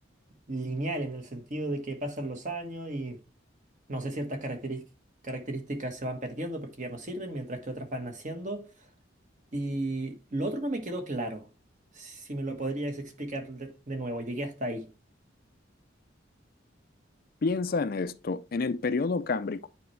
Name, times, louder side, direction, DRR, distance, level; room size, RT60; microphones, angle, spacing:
voice 1, 0.5-3.2 3.9-4.8 5.2-8.7 9.5-11.5 11.9-14.9, right 1 dB, 40° right, 1.4 m, -34 dB
voice 2, 17.4-19.7, left 4 dB, 50° left, 0.4 m, -29 dB
9.2 x 4.5 x 3.2 m
head